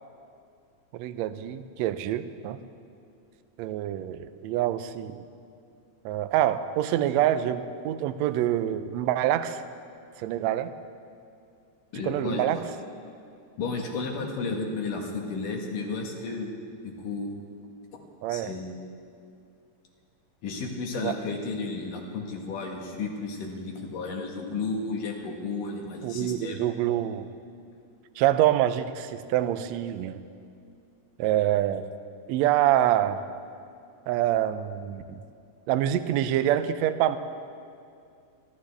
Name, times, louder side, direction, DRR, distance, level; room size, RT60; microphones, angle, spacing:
voice 1, 0.9-2.6 3.6-5.2 6.0-9.6 10.2-10.7 11.9-12.6 18.2-18.5 20.9-21.2 26.0-27.3 28.2-30.2 31.2-31.8 32.3-33.2 34.1-35.2 35.7-37.2, right 12 dB, 85° right, 11 dB, 1.6 m, -26 dB
voice 2, 11.9-12.6 13.6-16.5 16.8-17.4 18.3-18.6 20.4-26.6, left 4 dB, 85° left, 1 dB, 3.2 m, -33 dB
29.0 x 11.5 x 3.4 m, 2.4 s
omnidirectional pair, 3.7 m